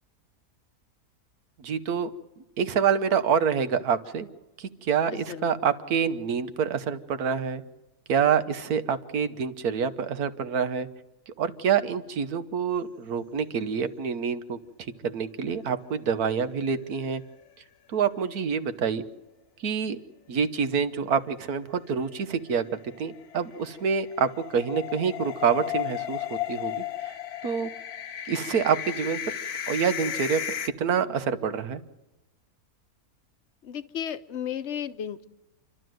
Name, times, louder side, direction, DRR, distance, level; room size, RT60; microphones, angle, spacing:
voice 1, 1.6-2.1 2.6-4.3 4.6-7.6 8.1-10.9 11.4-14.6 15.0-17.2 17.9-19.0 19.6-20.0 20.3-22.6 23.0-27.1 27.4-27.7 28.3-29.3 29.7-30.4 30.8-31.8, right 7 dB, 75° right, 11 dB, 1.6 m, -27 dB
voice 2, 5.1-5.5 33.6-35.3, left 9 dB, 55° left, 12 dB, 1.1 m, -34 dB
sound 1, 15.7-16.7 17.0-17.1 17.4-17.5 21.7-30.7, left 11 dB, 80° left, 1.4 m, -34 dB
28.5 x 12.5 x 7.8 m, 1.0 s
omnidirectional pair, 1.6 m